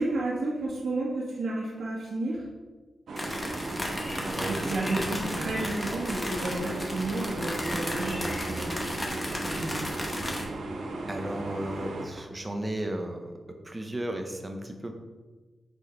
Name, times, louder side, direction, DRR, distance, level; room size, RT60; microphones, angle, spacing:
voice 1, 0.0-2.4 4.2-9.8, right 2 dB, 60° right, -8 dB, 1.5 m, -32 dB
sound 1, 3.1-12.0, right 2 dB, 90° right, 1.1 m, -36 dB
sound 2, 3.2-10.4, left 1 dB, 15° left, 1.0 m, -34 dB
voice 2, 4.2-4.7 5.0-5.1 11.1-14.9, right 1 dB, 15° right, 4 dB, 0.7 m, -35 dB
6.2 x 5.2 x 4.5 m, 1.3 s
wide cardioid pair, 155°, 0 cm